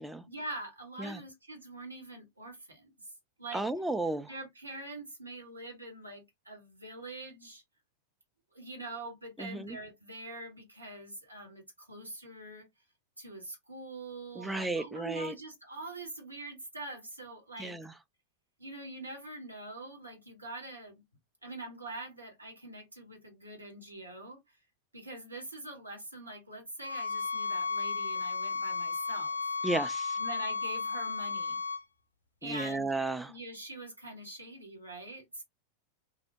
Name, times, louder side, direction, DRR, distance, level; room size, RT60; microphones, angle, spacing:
voice 1, 0.3-3.1 3.4-3.6 4.3-7.6 8.5-12.7 13.2-17.8 18.6-21.0 21.4-24.6 24.9-29.4 30.2-31.6 32.4-33.0 33.3-35.4, right 2 dB, 85° right, 0.9 m, -44 dB
voice 2, 3.5-4.3 9.4-9.8 14.4-15.3 17.6-17.9 29.6-30.2 32.4-33.3, right 2 dB, 5° right, 0.4 m, -33 dB
sound 1, 26.8-31.8, left 4 dB, 80° left, 0.4 m, -34 dB
2.7 x 2.1 x 2.6 m
figure-of-eight pair, 90°, 0 cm